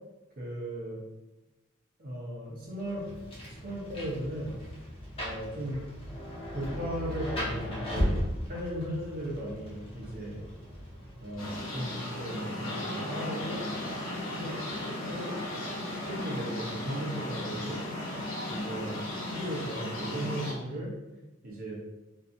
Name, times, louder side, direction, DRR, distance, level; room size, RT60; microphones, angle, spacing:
voice 1, 0.4-1.0 2.0-3.1 3.5-4.6 5.2-5.9 6.5-8.2 8.5-10.4 11.2-13.6 14.3-15.4 15.9-17.8 18.5-20.9 21.4-21.8, right 1 dB, 45° right, -3 dB, 0.8 m, -37 dB
Rain, 2.8-11.8, equal, 25° left, 0.6 m, -36 dB
sound 1, 11.4-20.5, left 1 dB, 70° left, 1.0 m, -36 dB
2.7 x 2.5 x 2.6 m, 1.0 s
head